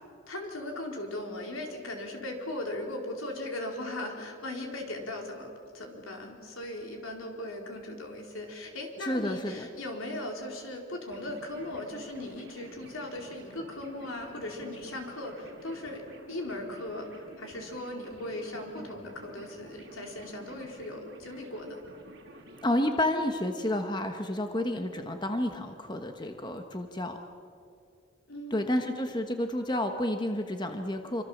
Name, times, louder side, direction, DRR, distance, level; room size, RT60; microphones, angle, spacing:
voice 1, 0.3-16.0 16.3-21.7 28.3-28.9, left 1 dB, 85° left, 1 dB, 4.3 m, -38 dB
voice 2, 9.0-9.6 22.6-27.2 28.5-31.2, left 1 dB, 20° left, 5 dB, 1.2 m, -30 dB
sound 1, 11.1-22.6, right 1 dB, 55° right, 5.0 m, -51 dB
27.0 x 25.5 x 7.3 m, 2.4 s
head